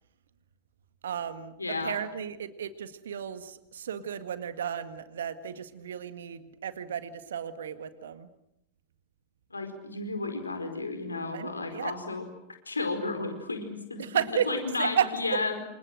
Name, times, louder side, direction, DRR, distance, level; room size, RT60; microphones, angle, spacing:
voice 1, 1.0-8.3 11.3-11.9 14.0-15.6, right 8 dB, 65° right, 11 dB, 1.9 m, -33 dB
voice 2, 1.6-2.0 9.5-12.3 12.7-14.0 14.5-15.6, left 3 dB, 80° left, 7 dB, 4.8 m, -32 dB
28.5 x 28.0 x 6.5 m, 0.82 s
figure-of-eight pair, 90°, 0 cm